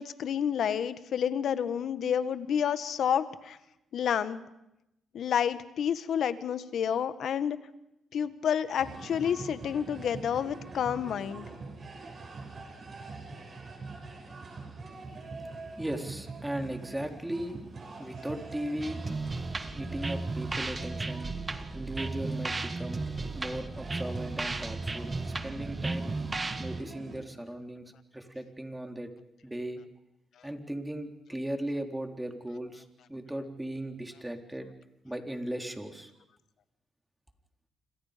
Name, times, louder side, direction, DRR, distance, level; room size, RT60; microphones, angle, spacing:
voice 1, 0.0-3.6 3.9-4.4 5.1-7.6 8.1-11.5, left 8 dB, 70° left, 12 dB, 1.5 m, -29 dB
sound 1, 8.8-27.2, right 3 dB, 45° right, 6.3 m, -44 dB
voice 2, 15.8-17.6 18.0-19.0 19.7-21.3 21.7-23.0 23.3-26.1 26.6-29.1 29.4-29.8 30.4-34.7 35.0-36.1, right 1 dB, 10° right, 4 dB, 3.7 m, -37 dB
sound 2, 18.8-26.8, right 3 dB, 30° right, 1.7 m, -35 dB
28.5 x 27.0 x 5.2 m, 0.90 s
supercardioid pair, 65°, 0 cm